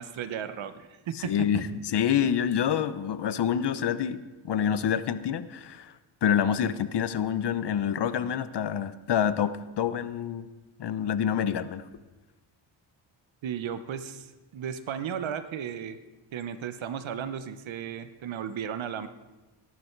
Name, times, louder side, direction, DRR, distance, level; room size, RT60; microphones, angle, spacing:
voice 1, 0.0-1.7 13.4-14.3 14.5-16.0 16.3-19.1, right 8 dB, 70° right, 11 dB, 1.1 m, -35 dB
voice 2, 1.2-5.9 6.2-10.5 10.8-11.8, left 9 dB, 55° left, 14 dB, 0.9 m, -27 dB
18.0 x 11.5 x 4.6 m, 1.1 s
cardioid pair, 125°, 48 cm